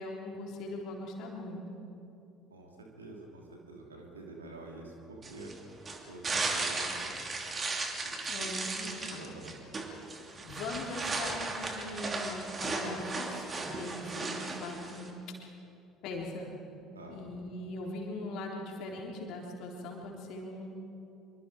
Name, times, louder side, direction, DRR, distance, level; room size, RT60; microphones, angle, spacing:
voice 1, 0.0-1.8 8.2-9.2 10.4-15.2 16.0-16.5 17.1-20.7, left 2 dB, 55° left, -1 dB, 3.8 m, -40 dB
voice 2, 2.5-5.5 6.1-7.1 8.0-8.1 8.8-9.6 16.9-17.2, right 2 dB, 80° right, 0 dB, 2.9 m, -47 dB
sound 1, 5.2-15.1, right 3 dB, 30° right, 2.7 m, -36 dB
25.5 x 24.0 x 4.9 m, 2.8 s
figure-of-eight pair, 60°, 0 cm